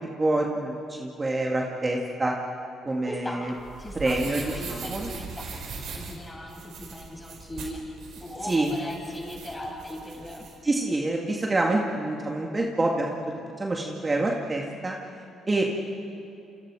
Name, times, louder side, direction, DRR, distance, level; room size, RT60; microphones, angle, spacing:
voice 1, 0.0-2.3 2.8-3.5 4.0-4.4 4.7-5.1 8.4-8.7 10.6-13.1 13.6-15.0 15.5-15.8, right 2 dB, 25° right, 0 dB, 2.2 m, -26 dB
voice 2, 3.0-3.4 3.8-5.4 5.9-7.8 8.2-10.5, left 1 dB, 15° left, 0 dB, 6.9 m, -38 dB
sound 1, 3.4-10.5, right 4 dB, 70° right, 4.7 m, -40 dB
28.5 x 26.5 x 4.9 m, 2.7 s
cardioid pair, 80°, 0 cm